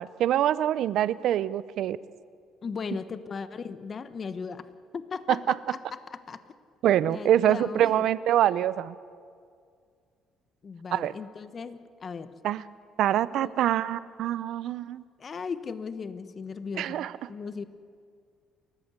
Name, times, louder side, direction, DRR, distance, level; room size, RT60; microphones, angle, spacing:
voice 1, 0.0-2.0 5.3-5.5 6.8-8.9 10.9-11.1 12.4-12.6 13.0-15.0 16.8-17.1, right 11 dB, 70° right, 18 dB, 0.6 m, -25 dB
voice 2, 2.6-6.4 7.0-8.1 10.6-12.3 13.4-13.5 15.2-17.6, left 5 dB, 40° left, 12 dB, 1.1 m, -37 dB
30.0 x 14.0 x 8.2 m, 2.2 s
cardioid pair, 105°, 0 cm